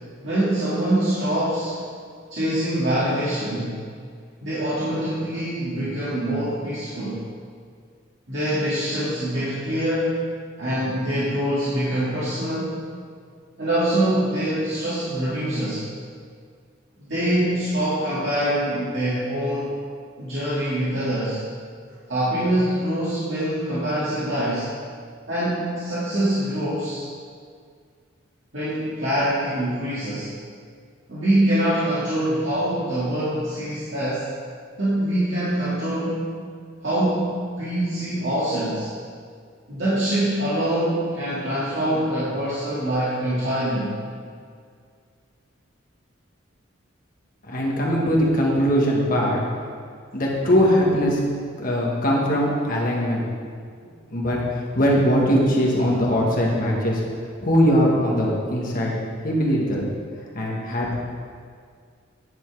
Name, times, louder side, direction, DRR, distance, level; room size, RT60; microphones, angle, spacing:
voice 1, 0.2-1.8 2.3-3.8 4.4-7.2 8.3-10.3 10.6-12.8 13.6-15.8 17.1-19.7 20.2-21.4 22.1-24.7 25.3-27.0 28.5-30.3 31.1-34.3 34.8-36.4 36.8-38.9 39.7-43.9, right 1 dB, 65° right, -10 dB, 1.9 m, -24 dB
voice 2, 47.4-49.4 50.1-51.2 51.6-53.6 54.1-57.0 57.4-58.9 59.2-59.8 60.3-60.9, equal, 45° left, -3 dB, 1.6 m, -21 dB
9.8 x 5.4 x 4.7 m, 2.1 s
head